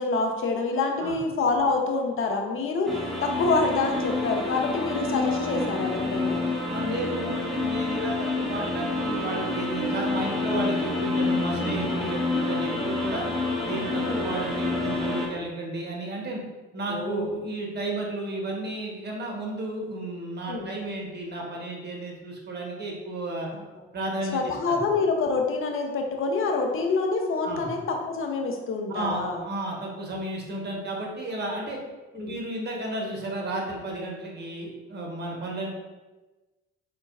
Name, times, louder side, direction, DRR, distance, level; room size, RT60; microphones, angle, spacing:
voice 1, 0.0-2.9 3.2-6.4 11.6-11.7 14.0-14.3 16.9-17.3 20.5-20.7 24.3-29.4 32.1-32.3, left 3 dB, 45° left, 3 dB, 0.6 m, -26 dB
sound 1, 2.9-15.3, left 2 dB, ahead, 0.8 m, -28 dB
voice 2, 6.7-13.3 13.6-16.4 16.7-23.5 23.9-24.8 27.4-27.7 28.9-31.8 32.1-35.7, right 2 dB, 35° right, -1 dB, 0.9 m, -33 dB
3.9 x 2.2 x 2.3 m, 1.2 s
hypercardioid pair, 50°, 30 cm